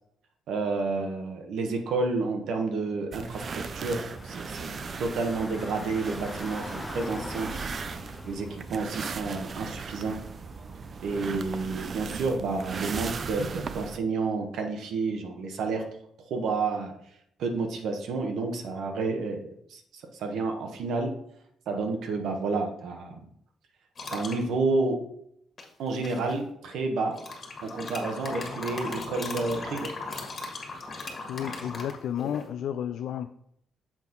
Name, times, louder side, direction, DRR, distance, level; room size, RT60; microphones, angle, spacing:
voice 1, 0.5-4.7 5.0-7.5 8.2-10.2 11.0-15.8 16.2-16.9 17.4-21.1 21.7-23.2 24.1-25.0 25.8-27.1 27.6-29.9, right 3 dB, 75° right, 3 dB, 1.1 m, -30 dB
sound 1, 3.1-14.0, right 5 dB, 45° right, 0.4 m, -37 dB
Car / Engine, 3.3-11.5, left 2 dB, 15° left, 0.5 m, -44 dB
sound 2, 24.0-24.4 25.6-26.3 27.1-32.5, left 3 dB, 45° left, 1.7 m, -37 dB
voice 2, 31.3-33.3, left 9 dB, 75° left, 9 dB, 0.3 m, -32 dB
7.3 x 4.2 x 3.9 m, 0.72 s
cardioid pair, 90°, 0 cm